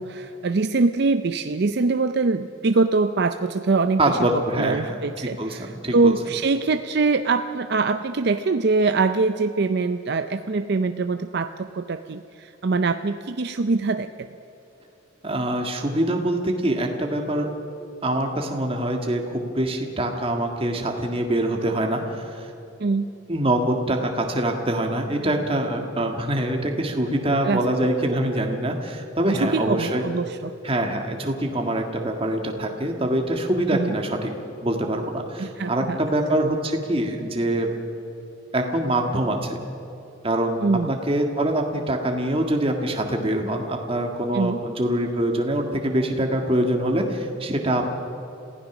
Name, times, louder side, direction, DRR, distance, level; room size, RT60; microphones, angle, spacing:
voice 1, 0.0-14.3 22.8-23.1 27.4-27.6 29.3-30.5 33.7-33.9 35.4-36.0 40.6-40.9 44.3-44.6, right 3 dB, 55° right, 9 dB, 0.5 m, -23 dB
voice 2, 4.0-6.1 15.2-17.5 18.0-22.5 23.3-30.0 30.6-34.3 34.6-37.7 38.5-39.6 40.2-40.6 40.9-47.8, right 1 dB, 30° right, 3 dB, 1.7 m, -24 dB
27.0 x 16.0 x 6.1 m, 2.8 s
head